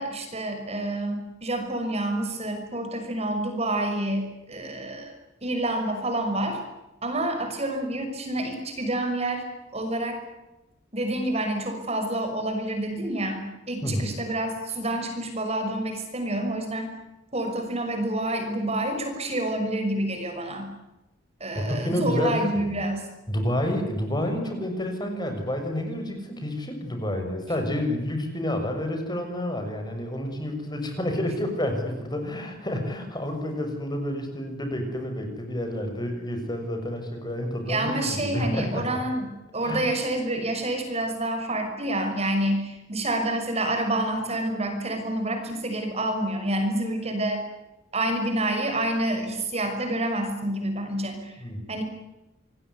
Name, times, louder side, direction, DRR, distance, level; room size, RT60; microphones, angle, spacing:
voice 1, 0.0-5.1 5.4-6.6 7.0-9.5 9.7-10.2 10.9-16.9 17.3-20.7 21.4-23.1 37.7-47.4 47.9-51.3 51.7-51.8, right 1 dB, 35° right, 5 dB, 6.0 m, -28 dB
voice 2, 21.5-22.6 23.3-38.8 39.6-39.9 51.4-51.6, left 1 dB, 20° left, 5 dB, 6.8 m, -29 dB
27.5 x 21.0 x 9.8 m, 0.96 s
head